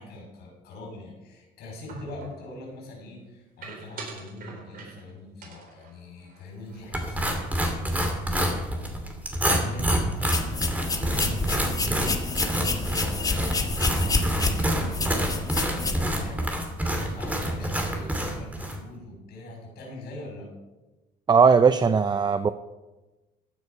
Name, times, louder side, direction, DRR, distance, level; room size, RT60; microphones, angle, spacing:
voice 1, 0.0-15.3 15.7-20.5, left 2 dB, 75° left, 0 dB, 5.9 m, -43 dB
sound 1, 1.9-2.5 3.6-5.1 5.4-7.1 7.4-7.6 7.9-8.4, right 3 dB, 60° right, 3.4 m, -44 dB
sound 2, 6.9-18.8, right 1 dB, 10° right, 2.8 m, -27 dB
sound 3, 10.2-16.1, left 3 dB, 20° left, 1.7 m, -29 dB
voice 2, 21.3-22.5, right 5 dB, 25° right, 12 dB, 0.5 m, -18 dB
15.0 x 9.5 x 5.5 m, 1.1 s
cardioid pair, 110°, 17 cm